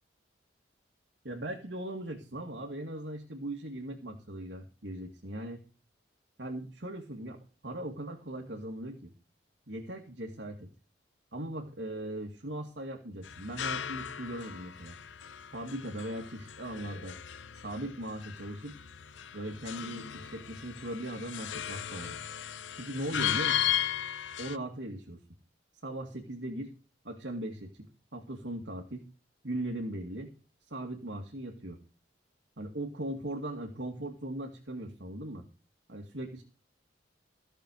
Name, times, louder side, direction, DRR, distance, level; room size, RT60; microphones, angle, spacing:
voice 1, 1.2-5.6 6.4-7.4 7.6-9.1 9.7-10.7 11.3-15.0 15.5-17.2 17.5-18.8 19.3-22.2 22.7-23.6 24.4-25.2 25.8-26.7 27.0-29.0 29.4-30.3 30.7-31.8 32.6-35.4 35.9-36.4, right 1 dB, 65° right, 1 dB, 2.2 m, -39 dB
sound 1, 13.2-24.6, left 10 dB, 75° left, 0.7 m, -36 dB
15.0 x 6.7 x 6.6 m, 0.35 s
head